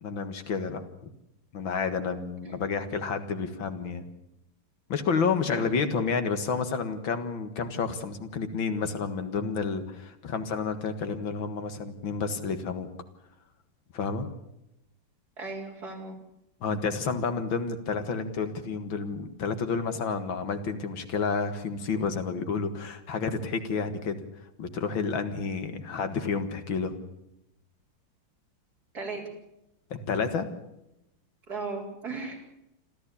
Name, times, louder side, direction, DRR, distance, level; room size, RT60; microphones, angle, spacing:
voice 1, 0.0-0.8 1.5-4.0 4.9-12.9 13.9-14.3 16.6-24.2 24.6-26.9 29.9-30.5, left 5 dB, 80° left, 9 dB, 2.4 m, -30 dB
voice 2, 15.4-16.1 28.9-29.2 31.5-32.4, right 3 dB, 50° right, 0 dB, 4.8 m, -36 dB
27.0 x 14.0 x 8.5 m, 0.86 s
omnidirectional pair, 2.1 m